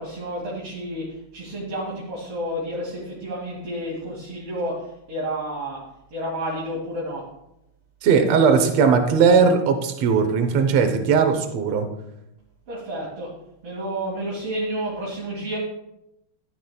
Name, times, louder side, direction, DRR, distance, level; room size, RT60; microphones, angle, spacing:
voice 1, 0.0-5.8 6.1-7.3 12.7-13.3 13.6-15.6, right 1 dB, 45° right, -4 dB, 2.6 m, -30 dB
voice 2, 8.0-11.9, right 5 dB, 70° right, 5 dB, 1.5 m, -18 dB
13.5 x 10.5 x 2.3 m, 0.85 s
omnidirectional pair, 4.2 m